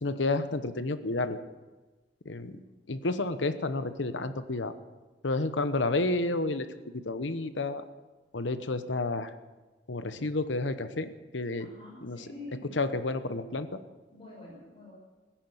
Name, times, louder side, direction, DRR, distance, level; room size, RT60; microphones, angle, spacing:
voice 1, 0.0-1.4 2.2-2.6 2.9-4.7 5.2-6.7 6.9-7.8 8.3-9.3 9.9-11.7 12.0-12.2 12.8-13.8, left 2 dB, 85° left, 11 dB, 1.0 m, -30 dB
voice 2, 11.6-12.6 14.1-14.9, left 2 dB, 30° left, -4 dB, 6.3 m, -46 dB
17.0 x 10.5 x 8.1 m, 1.2 s
head